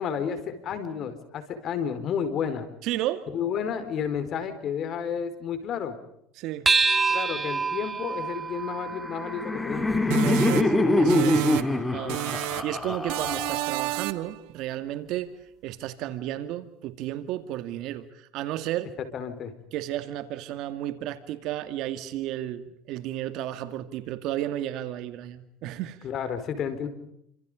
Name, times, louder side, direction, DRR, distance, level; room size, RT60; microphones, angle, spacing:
voice 1, 0.0-2.7 3.3-5.9 7.1-9.9 19.1-19.5 26.0-26.9, left 7 dB, 45° left, 10 dB, 4.5 m, -31 dB
voice 2, 2.8-3.3 6.4-6.7 7.4-7.5 10.2-11.5 11.9-15.3 15.6-18.9 19.7-26.0, right 13 dB, 60° right, 10 dB, 2.0 m, -33 dB
sound 1, 6.7-11.4, right 4 dB, 15° right, 2.0 m, -28 dB
Laughter, 8.9-14.0, left 1 dB, 10° left, 2.6 m, -24 dB
sound 2, 10.1-11.8 12.1-12.8 13.1-14.4, right 19 dB, 75° right, 1.3 m, -30 dB
29.0 x 26.5 x 5.1 m, 0.75 s
supercardioid pair, 130°, 0 cm